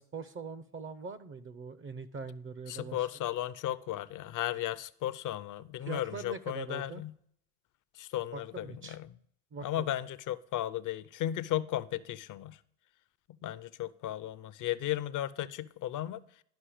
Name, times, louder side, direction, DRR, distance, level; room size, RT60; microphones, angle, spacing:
voice 1, 0.0-3.0 5.9-7.0 8.3-9.0 9.5-9.9, right 4 dB, 25° right, 0.6 m, -42 dB
voice 2, 2.7-7.2 7.9-9.1 9.6-12.6 13.3-16.4, left 13 dB, 40° left, 0.6 m, -35 dB
11.5 x 5.5 x 5.0 m
hypercardioid pair, 85°, 49 cm